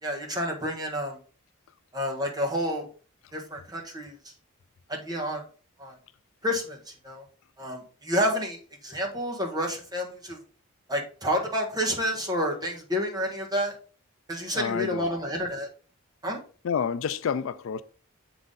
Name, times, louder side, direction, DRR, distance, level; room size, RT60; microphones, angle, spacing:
voice 1, 0.0-1.2 1.9-2.8 3.3-4.1 4.9-5.4 5.8-6.0 6.4-6.8 7.0-7.2 7.6-10.4 10.9-13.8 14.3-15.7 16.2-16.4, equal, 20° right, 1.4 m, -29 dB
voice 2, 14.5-15.1 16.6-17.8, left 7 dB, 65° left, 0.3 m, -29 dB
7.0 x 3.9 x 3.8 m
head